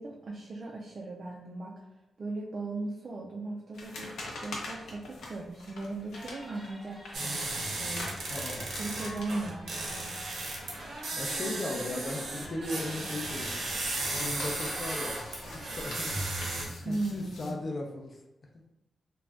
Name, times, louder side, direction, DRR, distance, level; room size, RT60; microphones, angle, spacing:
voice 1, 0.0-1.7 2.2-8.1 8.8-10.0 16.8-17.6, right 2 dB, 45° right, -3 dB, 0.4 m, -38 dB
sound 1, 3.7-12.5 12.8-17.5, left 2 dB, 85° left, 0.6 m, -45 dB
sound 2, 6.1-15.8, equal, ahead, 0.6 m, -49 dB
sound 3, 7.1-16.7, right 2 dB, 80° right, 0.7 m, -35 dB
voice 2, 8.2-8.7 11.1-13.6 14.2-15.2 15.5-16.2 16.8-18.2, left 2 dB, 40° left, 1 dB, 0.5 m, -37 dB
2.5 x 2.2 x 3.3 m, 0.94 s
cardioid pair, 105°, 0 cm